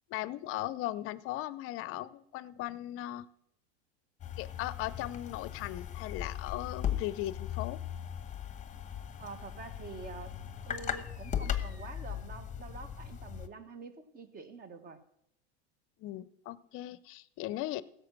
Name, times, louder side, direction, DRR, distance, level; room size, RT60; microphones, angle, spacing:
voice 1, 0.1-3.3 4.4-7.8 16.0-17.8, left 15 dB, 40° left, 18 dB, 0.6 m, -38 dB
sound 1, 4.2-13.5, left 9 dB, 20° left, 1.0 m, -38 dB
voice 2, 9.2-10.4 10.7-15.0, right 4 dB, 25° right, 11 dB, 1.4 m, -47 dB
15.5 x 6.8 x 6.1 m, 0.76 s
hypercardioid pair, 105°, 33 cm